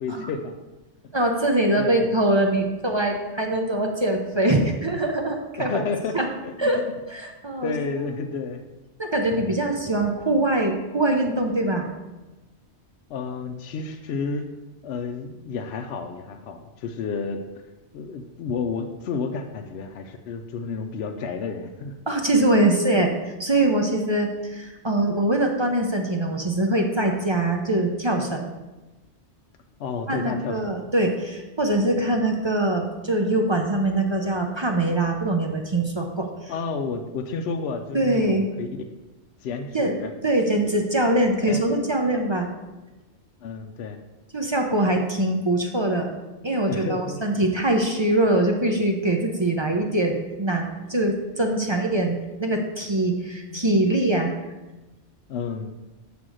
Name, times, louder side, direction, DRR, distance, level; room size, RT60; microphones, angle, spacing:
voice 1, 0.0-0.5 1.8-2.0 5.6-6.7 7.6-8.7 9.3-9.5 13.1-14.5 14.8-17.4 17.9-21.9 29.8-30.7 36.5-38.7 39.4-40.1 41.5-41.6 43.4-44.0 44.9-45.0 46.7-47.2 53.5-53.8 55.3-55.7, left 5 dB, 70° left, 5 dB, 0.8 m, -31 dB
voice 2, 1.1-5.8 6.1-6.3 6.6-7.7 9.0-11.9 22.1-28.5 30.1-36.5 37.9-38.5 39.7-39.9 40.2-42.5 44.3-46.1 46.4-54.3, right 1 dB, 35° right, 2 dB, 0.5 m, -23 dB
7.4 x 3.4 x 6.2 m, 1.1 s
omnidirectional pair, 1.2 m